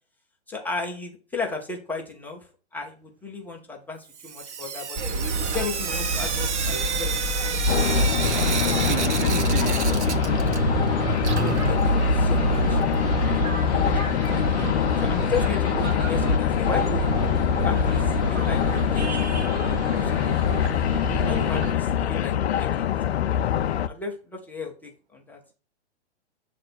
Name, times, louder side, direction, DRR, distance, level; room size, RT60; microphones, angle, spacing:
voice 1, 0.5-2.5 2.7-5.0 5.4-7.8 11.4-14.2 15.0-17.3 17.6-18.6 18.9-19.3 20.0-20.2 21.3-23.5 23.9-25.4, left 4 dB, 5° left, 0.4 m, -35 dB
Sink (filling or washing) / Drip, 4.1-10.9 11.1-13.1 14.3-14.4 14.7-14.8 15.0-15.1 18.0-18.1 18.6-18.7 19.2-19.3 19.9-20.0 20.7-20.8 21.6-21.7, right 7 dB, 75° right, 0.8 m, -31 dB
sound 1, 5.0-21.7, right 2 dB, 25° right, 1.0 m, -27 dB
sound 2, 7.7-23.9, left 10 dB, 65° left, 0.5 m, -24 dB
voice 2, 8.7-10.3, right 9 dB, 50° right, 0.5 m, -33 dB
7.5 x 3.3 x 4.2 m
hypercardioid pair, 125°, 35 cm